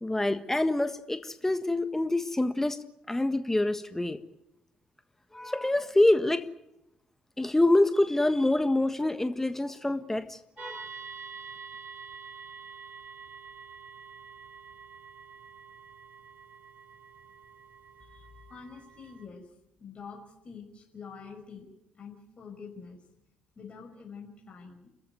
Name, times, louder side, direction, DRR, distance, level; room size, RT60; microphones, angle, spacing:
voice 1, 0.0-2.8 3.1-4.2 5.3-6.5 7.4-10.9, left 2 dB, 10° left, 10 dB, 1.5 m, -26 dB
sound 1, 10.6-19.3, right 5 dB, 55° right, 2.9 m, -47 dB
voice 2, 18.0-19.5 19.8-21.7 21.9-23.1 23.6-24.9, left 5 dB, 40° left, 0 dB, 5.7 m, -46 dB
30.0 x 14.5 x 9.4 m, 0.86 s
hypercardioid pair, 45°, 3 cm